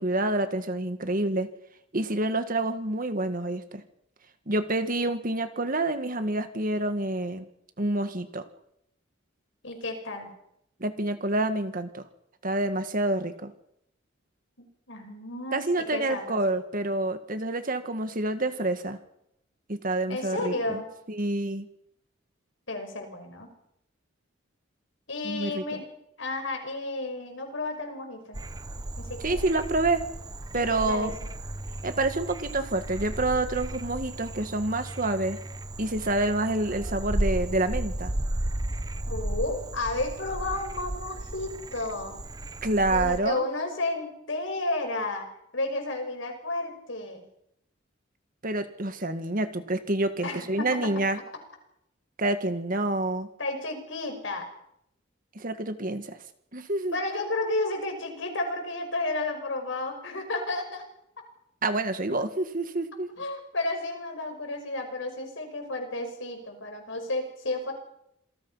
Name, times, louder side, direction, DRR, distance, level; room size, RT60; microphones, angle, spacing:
voice 1, 0.0-1.5 1.9-3.8 4.5-7.5 7.8-8.4 10.8-12.0 12.4-13.5 15.5-19.0 19.7-20.8 21.1-21.7 25.2-25.8 29.2-30.1 30.5-31.2 31.8-35.4 35.8-38.1 42.6-43.5 48.4-51.2 52.2-53.3 55.4-56.2 56.5-57.0 61.6-63.1, right 2 dB, 45° right, 9 dB, 1.8 m, -28 dB
voice 2, 9.6-10.3 14.9-15.6 15.9-16.4 20.1-20.9 22.7-23.5 25.1-25.9 26.2-28.4 29.0-29.4 30.5-31.3 39.1-42.2 42.9-45.3 45.5-47.2 50.2-50.9 53.4-54.5 56.9-60.9 63.2-67.7, left 2 dB, 70° left, 4 dB, 5.9 m, -32 dB
Frog, 28.3-43.2, right 1 dB, 20° right, 0.8 m, -34 dB
27.5 x 18.5 x 5.7 m, 0.77 s
head